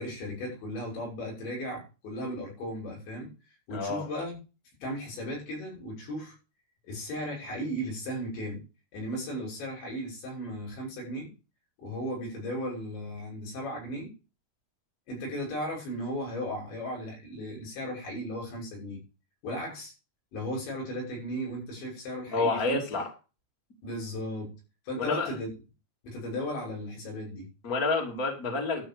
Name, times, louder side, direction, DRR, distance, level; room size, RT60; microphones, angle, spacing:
voice 1, 0.0-3.3 3.7-4.4 4.8-6.4 6.8-8.6 8.9-11.3 11.8-14.1 15.1-19.0 19.4-19.9 20.3-22.8 23.8-24.5 24.9-25.5 26.0-27.5, equal, 80° left, -3 dB, 8.5 m, -36 dB
voice 2, 3.7-4.1 22.3-23.1 25.0-25.3 27.6-28.8, left 3 dB, 25° left, 0 dB, 2.5 m, -28 dB
12.5 x 5.7 x 7.0 m, 0.32 s
omnidirectional pair, 5.1 m